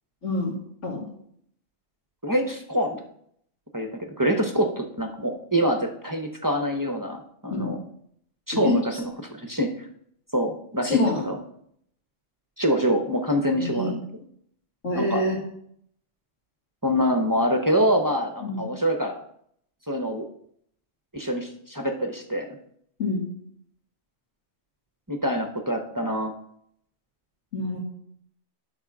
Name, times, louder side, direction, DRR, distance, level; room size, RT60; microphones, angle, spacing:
voice 1, 0.2-0.5 0.8-1.1 7.5-7.7 8.6-9.0 10.8-11.2 13.5-13.9 14.8-15.4 18.4-18.6 23.0-23.2 27.5-27.8, left 2 dB, 70° left, -7 dB, 2.6 m, -26 dB
voice 2, 2.2-3.0 3.7-7.8 8.5-9.7 10.3-11.4 12.6-14.0 14.9-15.3 16.8-19.2 19.9-20.2 21.1-22.5 25.1-26.3, equal, 20° right, 4 dB, 0.7 m, -25 dB
11.5 x 4.1 x 5.9 m, 0.69 s
omnidirectional pair, 1.3 m